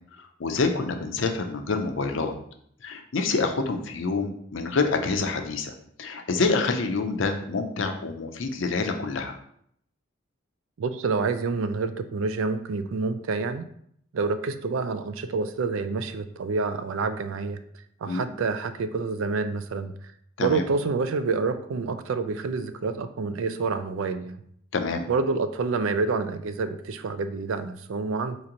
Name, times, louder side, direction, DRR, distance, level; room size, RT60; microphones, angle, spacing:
voice 1, 0.2-2.3 2.8-5.7 6.0-9.4 18.1-18.3 20.4-20.6 24.7-25.1, left 3 dB, 65° left, 5 dB, 0.5 m, -27 dB
voice 2, 10.8-13.7 14.1-17.6 18.0-19.9 20.4-24.4 25.1-28.4, right 4 dB, 70° right, 10 dB, 0.4 m, -28 dB
4.3 x 2.9 x 3.7 m, 0.67 s
head